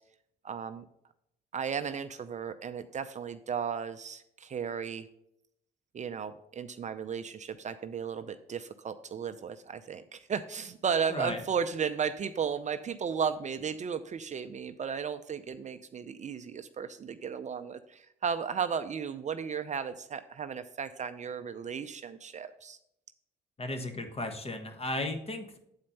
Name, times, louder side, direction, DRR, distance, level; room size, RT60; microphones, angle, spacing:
voice 1, 0.4-0.8 1.5-5.1 5.9-22.8, right 7 dB, 40° right, 10 dB, 0.5 m, -35 dB
voice 2, 23.6-25.6, left 2 dB, 35° left, 6 dB, 1.4 m, -35 dB
8.8 x 4.3 x 5.4 m, 0.78 s
supercardioid pair, 70°, 18 cm